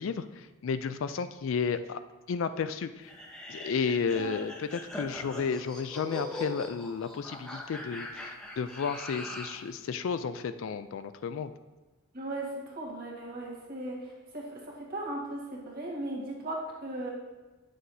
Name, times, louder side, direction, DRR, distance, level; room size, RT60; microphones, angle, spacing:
voice 1, 0.0-2.0 2.3-3.1 3.5-11.5, left 6 dB, 65° left, 12 dB, 0.3 m, -32 dB
sound 1, 3.1-9.6, left 1 dB, 5° left, 0.8 m, -41 dB
voice 2, 12.1-14.0 14.3-14.5 14.9-17.1, right 1 dB, 45° right, -3 dB, 1.7 m, -37 dB
9.0 x 6.4 x 2.7 m, 1.2 s
head